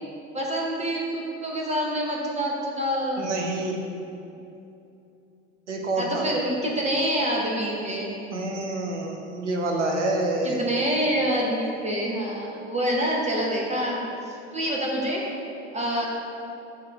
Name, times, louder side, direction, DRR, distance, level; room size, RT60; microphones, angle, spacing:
voice 1, 0.3-3.2 6.0-8.2 10.4-15.2 15.7-16.1, equal, 20° right, -2 dB, 0.9 m, -26 dB
voice 2, 3.2-3.8 5.7-6.3 8.3-10.6, right 2 dB, 85° right, 1 dB, 0.8 m, -27 dB
6.7 x 3.3 x 5.0 m, 2.8 s
figure-of-eight pair, 70°, 35 cm